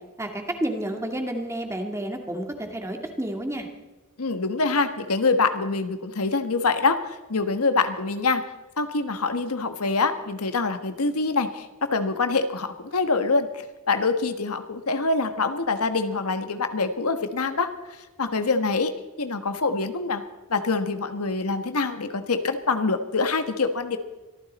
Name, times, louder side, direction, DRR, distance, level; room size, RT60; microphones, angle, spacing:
voice 1, 0.2-3.7, right 1 dB, 15° right, 4 dB, 2.0 m, -30 dB
voice 2, 4.2-8.4 8.8-18.9 19.2-20.2 20.5-24.0, left 3 dB, 85° left, 9 dB, 1.3 m, -25 dB
24.0 x 14.5 x 4.2 m, 1.1 s
head